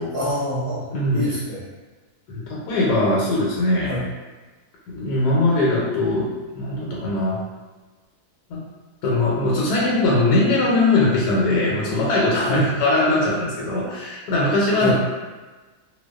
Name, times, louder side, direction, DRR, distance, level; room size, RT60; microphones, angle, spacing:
voice 1, 0.1-1.7 3.9-4.0 12.4-12.6 14.8-14.9, equal, 50° left, -13 dB, 0.4 m, -26 dB
voice 2, 0.9-1.2 2.3-3.9 4.9-7.4 8.5-8.6 9.0-14.9, left 2 dB, 90° left, -5 dB, 1.2 m, -21 dB
2.6 x 2.2 x 2.2 m, 1.3 s
omnidirectional pair, 1.7 m